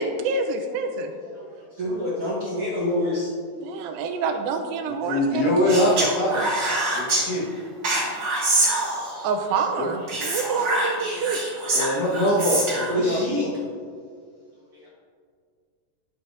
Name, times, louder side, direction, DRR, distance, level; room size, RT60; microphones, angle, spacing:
voice 1, 0.0-1.1 3.6-6.0 9.2-11.4, right 4 dB, 90° right, 6 dB, 2.5 m, -27 dB
voice 2, 1.8-3.3 6.8-6.9 10.3-11.2 12.9-13.5, left 1 dB, 60° right, -5 dB, 1.4 m, -27 dB
voice 3, 4.9-6.5 6.9-7.5 9.8-9.9 11.7-13.5, left 1 dB, 70° left, -3 dB, 3.0 m, -23 dB
Speech, 5.7-7.2 7.8-9.3 10.1-13.0, right 2 dB, 40° right, 2.0 m, -25 dB
11.0 x 7.0 x 2.6 m, 2.1 s
omnidirectional pair, 4.0 m